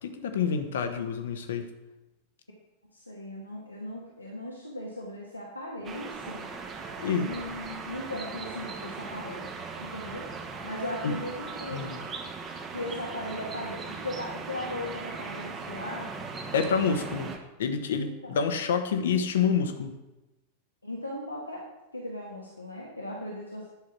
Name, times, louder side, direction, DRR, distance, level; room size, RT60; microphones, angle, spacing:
voice 1, 0.0-1.7 7.0-7.3 11.0-11.1 11.7-12.0 16.5-17.3 17.6-19.9, left 6 dB, 60° left, 7 dB, 1.1 m, -28 dB
voice 2, 2.9-6.5 7.1-9.5 9.8-10.3 10.6-11.8 12.7-16.1 18.0-18.4 20.8-21.6 21.9-23.7, left 1 dB, 85° left, -3 dB, 1.5 m, -38 dB
sound 1, 5.8-17.4, right 4 dB, 25° right, 1.4 m, -39 dB
10.5 x 6.3 x 5.9 m, 1.0 s
figure-of-eight pair, 90°, 0 cm